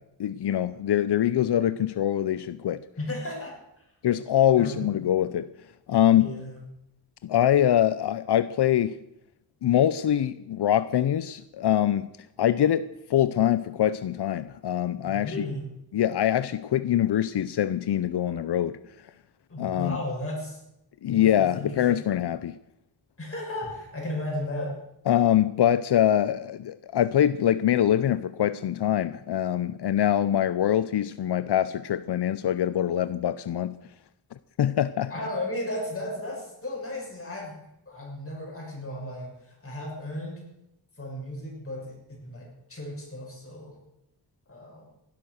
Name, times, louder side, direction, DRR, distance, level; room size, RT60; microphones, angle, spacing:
voice 1, 0.2-2.8 4.0-5.5 5.9-6.3 7.2-9.0 9.6-12.1 12.4-15.3 15.9-18.8 19.6-20.0 21.0-22.6 25.1-33.8 34.6-35.1, left 11 dB, 85° left, 0.6 m, -24 dB
voice 2, 3.0-3.6 4.6-4.9 6.2-6.6 15.0-15.6 19.5-20.6 21.1-22.0 23.2-24.8 35.1-37.6 37.9-40.4 41.0-42.0 42.2-43.8 44.5-44.9, left 1 dB, 35° left, 6.7 m, -34 dB
16.0 x 11.5 x 6.4 m
wide cardioid pair, 105°, 39 cm